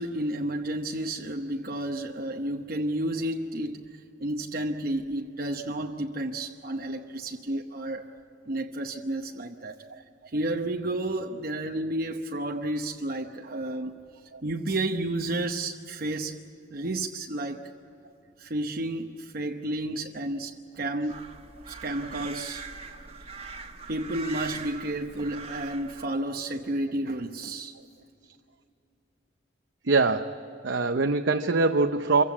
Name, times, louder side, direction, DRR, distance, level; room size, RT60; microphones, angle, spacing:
voice 1, 0.0-8.1 8.5-9.8 10.3-14.0 14.4-16.4 16.7-17.6 18.4-21.3 21.7-22.7 23.9-27.7, right 1 dB, 50° right, 3 dB, 0.9 m, -31 dB
sound 1, 21.1-26.1, right 4 dB, 30° right, 1.5 m, -42 dB
voice 2, 29.8-32.2, right 3 dB, 75° right, 6 dB, 0.7 m, -24 dB
25.5 x 16.0 x 8.5 m, 2.8 s
head